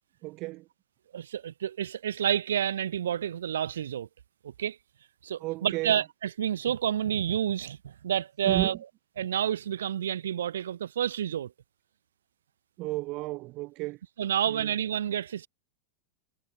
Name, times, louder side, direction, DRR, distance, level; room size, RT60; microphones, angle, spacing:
voice 1, 0.2-0.6 5.4-6.0 8.4-8.8 12.8-14.0 14.5-14.7, right 21 dB, 40° right, 0.8 m, -32 dB
voice 2, 1.1-4.1 4.4-4.8 5.2-8.8 9.2-11.5 14.2-15.5, right 10 dB, 65° right, 1.1 m, -29 dB
figure-of-eight pair, 90°, 0 cm